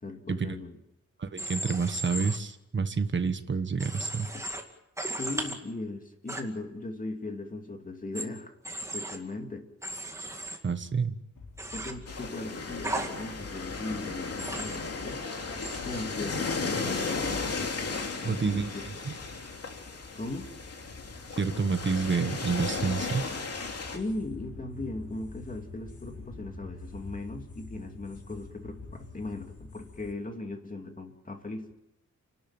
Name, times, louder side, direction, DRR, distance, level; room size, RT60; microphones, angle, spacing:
voice 1, 0.0-0.8 4.3-4.4 5.1-8.5 8.9-9.7 11.7-15.2 15.8-17.1 18.2-18.8 20.1-20.5 23.9-31.7, left 2 dB, 25° left, 4 dB, 2.6 m, -38 dB
voice 2, 1.2-4.3 10.6-11.1 18.2-18.7 19.1-19.2 21.4-23.3, right 5 dB, 40° right, 9 dB, 1.4 m, -28 dB
Human voice / Train, 1.4-2.4 3.8-4.6 5.0-5.5 6.3-6.4 8.1-8.2 8.6-9.2 9.8-10.6 11.6-11.9 12.8-13.1 14.4-14.8 15.6-15.8, right 1 dB, 10° right, 2.3 m, -35 dB
sound 1, 11.3-30.1, left 3 dB, 80° left, 4.1 m, -47 dB
sound 2, 12.1-24.0, left 4 dB, 55° left, 3.0 m, -35 dB
29.5 x 12.5 x 9.0 m, 0.87 s
wide cardioid pair, 165°, 29 cm